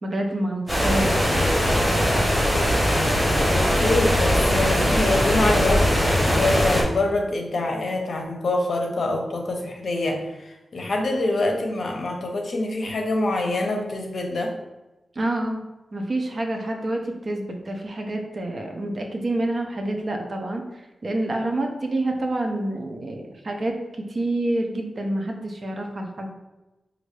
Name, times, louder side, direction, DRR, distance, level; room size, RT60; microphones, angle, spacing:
voice 1, 0.0-1.2 15.2-15.6 15.9-20.6 21.0-26.3, right 1 dB, 40° right, 2 dB, 0.6 m, -27 dB
sound 1, 0.7-6.8, equal, ahead, 1.3 m, -20 dB
voice 2, 3.5-14.5, left 2 dB, 60° left, 2 dB, 0.6 m, -25 dB
5.2 x 2.5 x 3.2 m, 1.0 s
wide cardioid pair, 125°, 0 cm